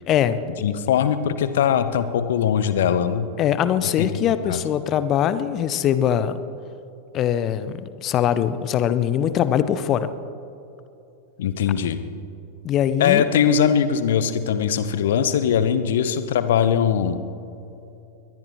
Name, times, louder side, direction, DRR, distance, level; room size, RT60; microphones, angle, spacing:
voice 1, 0.1-0.4 3.4-6.4 7.1-10.1 12.6-13.2, left 10 dB, 35° left, 13 dB, 0.7 m, -22 dB
voice 2, 0.6-3.3 4.0-4.6 11.4-12.0 13.0-17.2, left 8 dB, 60° left, 12 dB, 0.9 m, -21 dB
23.0 x 19.5 x 3.2 m, 2.8 s
figure-of-eight pair, 90°, 0 cm